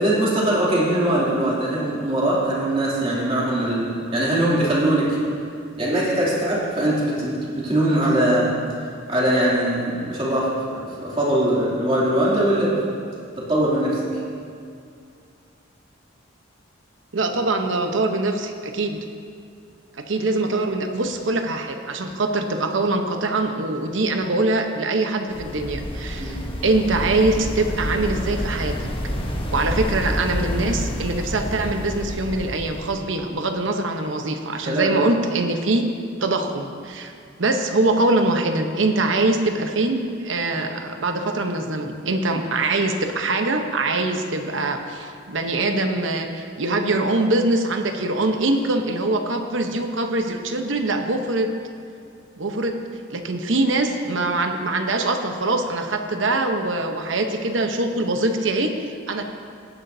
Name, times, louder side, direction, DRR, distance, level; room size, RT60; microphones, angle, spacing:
voice 1, 0.0-5.2 5.8-8.5 9.1-12.8 13.4-14.0 26.2-26.4 34.6-34.9, right 1 dB, 30° right, -7 dB, 2.8 m, -21 dB
voice 2, 17.1-19.0 20.0-28.9 29.5-35.8 36.2-37.1 37.4-51.5 52.4-52.8 53.1-58.7 59.1-59.2, right 2 dB, 70° right, 5 dB, 0.9 m, -23 dB
sound 1, 25.3-33.0, equal, 30° left, 1.0 m, -28 dB
17.0 x 10.0 x 2.7 m, 2.4 s
head